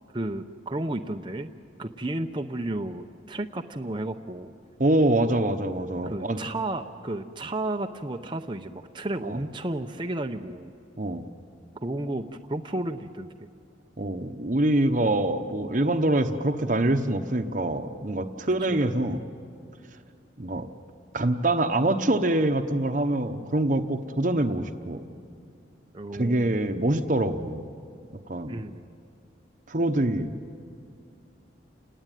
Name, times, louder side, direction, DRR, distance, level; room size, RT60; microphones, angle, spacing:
voice 1, 0.1-1.5 1.8-4.5 6.0-10.7 11.8-13.5 18.6-18.9 25.9-26.6 28.5-28.8, right 1 dB, 25° right, 5 dB, 0.7 m, -32 dB
voice 2, 4.8-6.4 9.3-9.4 11.0-11.2 14.0-19.2 20.4-20.7 21.1-25.0 26.1-27.6 28.3-28.5 29.7-30.3, right 1 dB, 45° right, 6 dB, 1.0 m, -25 dB
29.5 x 19.0 x 9.2 m, 2.4 s
head